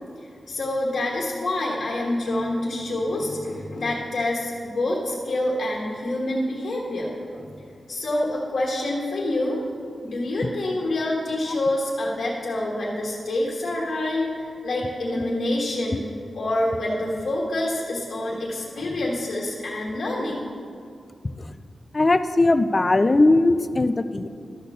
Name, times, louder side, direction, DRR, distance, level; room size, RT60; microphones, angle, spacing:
voice 1, 0.5-7.5 7.9-9.6 10.0-16.1 16.3-20.5, left 1 dB, 75° left, -4 dB, 1.3 m, -27 dB
voice 2, 21.9-24.3, left 2 dB, 30° left, 11 dB, 0.3 m, -19 dB
12.5 x 4.2 x 6.7 m, 2.3 s
wide cardioid pair, 130°, 0 cm